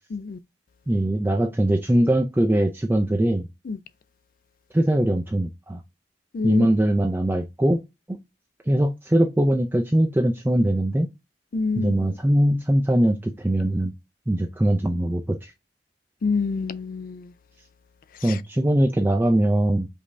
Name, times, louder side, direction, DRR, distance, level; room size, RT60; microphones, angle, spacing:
voice 1, 0.9-3.5 4.7-5.8 6.4-7.8 8.1-8.2 8.7-11.1 11.8-13.9 14.3-15.5 18.2-19.9, right 1 dB, 10° right, 0.4 m, -21 dB
voice 2, 6.3-6.7 11.5-11.9 16.2-17.3 18.3-18.4, left 4 dB, 50° left, 0.4 m, -26 dB
5.1 x 2.7 x 3.2 m
head